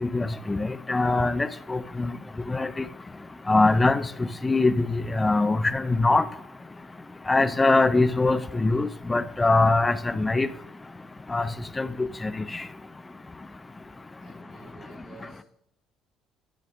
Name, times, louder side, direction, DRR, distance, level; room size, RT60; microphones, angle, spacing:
voice 1, 0.0-2.1 2.5-2.7 3.5-4.1 4.4-6.2 7.3-10.5 11.3-11.5 11.8-12.3, left 3 dB, 20° left, 14 dB, 0.5 m, -22 dB
voice 2, 14.2-15.4, right 4 dB, 55° right, -6 dB, 3.8 m, -50 dB
9.3 x 6.8 x 3.6 m, 0.78 s
supercardioid pair, 75°, 0 cm